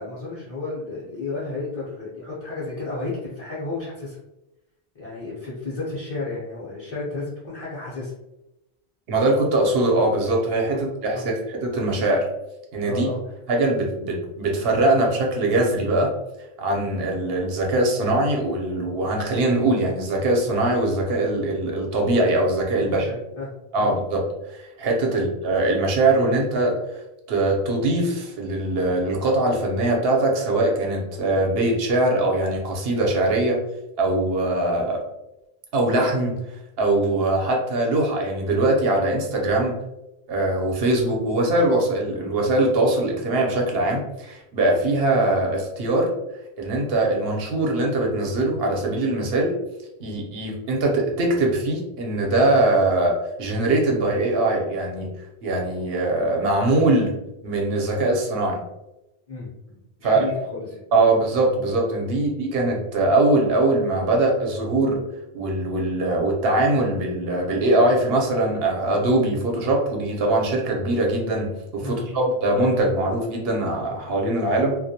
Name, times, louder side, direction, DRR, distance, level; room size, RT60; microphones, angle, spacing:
voice 1, 0.0-4.2 4.9-8.1 10.7-10.8 11.1-11.3 12.8-13.2 22.8-23.5 23.8-23.9 25.1-25.2 59.3-60.8 71.8-72.2, left 3 dB, 40° left, -8 dB, 0.6 m, -32 dB
voice 2, 9.1-12.3 12.7-13.1 13.5-16.1 16.6-23.0 23.7-24.3 24.5-26.7 27.3-33.6 34.0-35.0 35.7-36.4 36.8-39.8 40.3-46.1 46.6-49.5 50.0-55.1 55.4-57.1 57.4-58.6 60.0-60.2 60.9-65.0 65.3-74.8, right 2 dB, 70° right, 0 dB, 0.9 m, -22 dB
2.2 x 2.1 x 2.7 m, 0.92 s
omnidirectional pair, 1.1 m